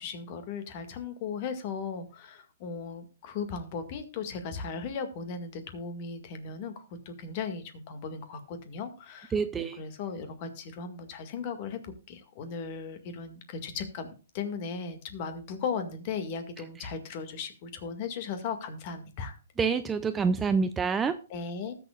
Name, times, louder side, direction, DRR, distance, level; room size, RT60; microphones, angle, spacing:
voice 1, 0.0-19.4 21.3-21.8, left 5 dB, 35° left, 8 dB, 1.9 m, -37 dB
voice 2, 9.3-9.8 19.6-21.2, right 5 dB, 10° right, 11 dB, 0.4 m, -27 dB
19.5 x 6.8 x 2.4 m, 0.35 s
hypercardioid pair, 160°, 0 cm